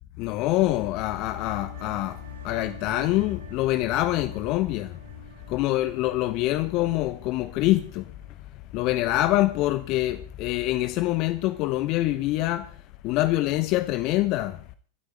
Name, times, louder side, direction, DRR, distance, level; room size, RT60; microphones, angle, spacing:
voice 1, 0.2-5.0 5.5-8.1 8.7-12.8 13.0-14.6, left 16 dB, 40° left, 1.0 m, -25 dB
sound 1, 0.9-8.3, right 7 dB, 80° right, 5.6 m, -50 dB
25.5 x 13.0 x 3.3 m
figure-of-eight pair, 90°, 0 cm